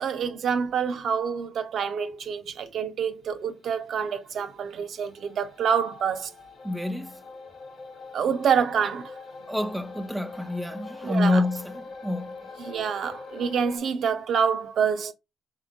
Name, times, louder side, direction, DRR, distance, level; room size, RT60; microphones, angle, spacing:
voice 1, 0.0-6.3 8.1-9.2 11.0-11.4 12.6-15.1, right 7 dB, 65° right, 0.5 m, -27 dB
sound 1, 3.4-13.8, left 4 dB, 75° left, 0.9 m, -44 dB
voice 2, 6.6-7.2 9.5-12.3, left 2 dB, 5° right, 0.4 m, -27 dB
3.7 x 3.6 x 2.4 m
hypercardioid pair, 45°, 0 cm